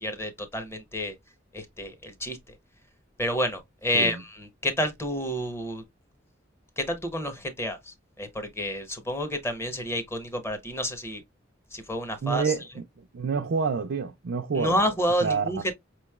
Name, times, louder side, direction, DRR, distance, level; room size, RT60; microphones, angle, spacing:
voice 1, 0.0-1.1 1.5-2.6 3.2-5.8 6.8-11.2 11.7-12.5 14.5-15.7, equal, 15° left, 0.8 m, -29 dB
voice 2, 12.2-12.8 13.1-14.8 15.2-15.5, right 5 dB, 65° right, 0.4 m, -28 dB
5.0 x 3.0 x 2.3 m
head